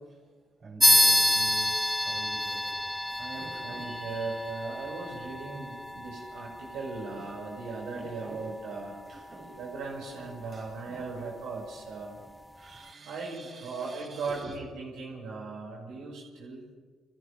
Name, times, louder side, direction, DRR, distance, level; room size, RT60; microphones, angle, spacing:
voice 1, 0.6-2.8 3.3-4.0 7.1-7.3 7.9-8.5 9.1-9.6 10.1-11.4 12.3-14.6, right 2 dB, 45° right, 7.3 m, -47 dB
sound 1, 0.8-10.8, left 1 dB, 5° left, 0.5 m, -29 dB
voice 2, 3.1-9.0 9.6-12.2 13.0-16.7, right 4 dB, 85° right, 6.0 m, -38 dB
29.5 x 27.0 x 3.5 m
cardioid pair, 90°, 0 cm